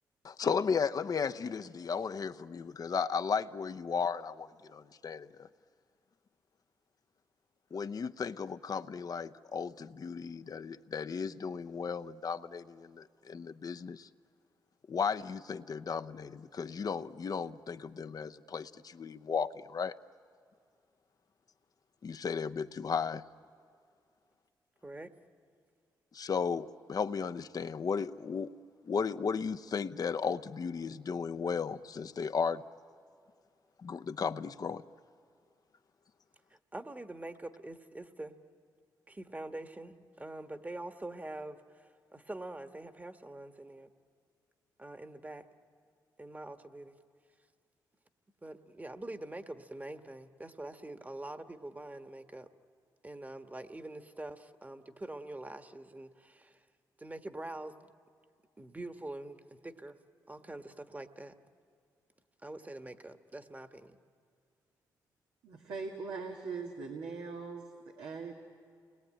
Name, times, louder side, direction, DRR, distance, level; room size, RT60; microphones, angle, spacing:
voice 1, 0.2-5.5 7.7-14.1 14.9-20.0 22.0-23.2 26.1-28.5 28.8-32.6 33.8-34.8, left 6 dB, 50° left, 10 dB, 0.8 m, -35 dB
voice 2, 24.8-25.1 36.5-38.3 39.1-43.9 44.8-45.5 46.2-47.0 48.4-52.5 53.0-56.6 57.0-57.9 58.6-60.0 60.3-61.3 62.4-64.0, right 2 dB, 20° right, 8 dB, 1.5 m, -45 dB
voice 3, 65.4-68.3, right 4 dB, 85° right, 0 dB, 2.1 m, -41 dB
29.5 x 21.0 x 8.9 m, 2.3 s
supercardioid pair, 55°, 8 cm